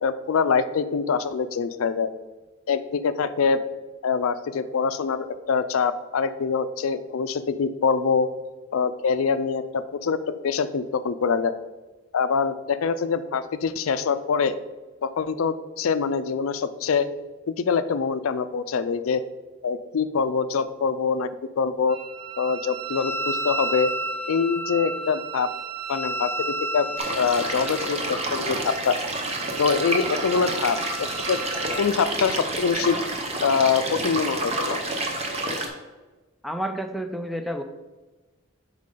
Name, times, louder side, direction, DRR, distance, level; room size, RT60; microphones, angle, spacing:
voice 1, 0.0-2.1 2.7-3.6 4.0-8.3 8.7-10.2 10.4-11.5 12.1-14.5 15.0-17.1 17.6-19.2 19.6-21.3 21.6-22.0 22.4-23.9 24.3-25.5 25.9-26.9 27.1-29.0 29.6-30.8 31.3-31.4 31.8-33.0 33.4-34.8, left 5 dB, 80° left, 13 dB, 0.4 m, -24 dB
Wind instrument woodwind instrument, 21.9-31.8, right 2 dB, 75° right, 1.2 m, -33 dB
sound 1, 27.0-35.7, right 2 dB, 30° right, 0.9 m, -29 dB
voice 2, 36.4-37.6, equal, ahead, 6 dB, 0.4 m, -30 dB
7.5 x 5.0 x 3.8 m, 1.2 s
head